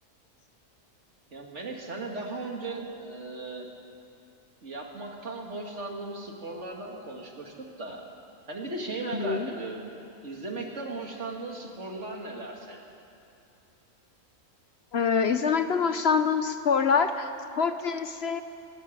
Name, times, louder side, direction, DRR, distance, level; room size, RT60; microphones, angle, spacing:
voice 1, 1.3-3.7 4.6-8.0 8.5-9.9 10.2-12.8, right 2 dB, 60° right, 1 dB, 2.6 m, -37 dB
voice 2, 14.9-17.3 17.6-18.4, left 6 dB, 55° left, 9 dB, 1.0 m, -25 dB
22.0 x 13.5 x 8.7 m, 2.8 s
omnidirectional pair, 1.4 m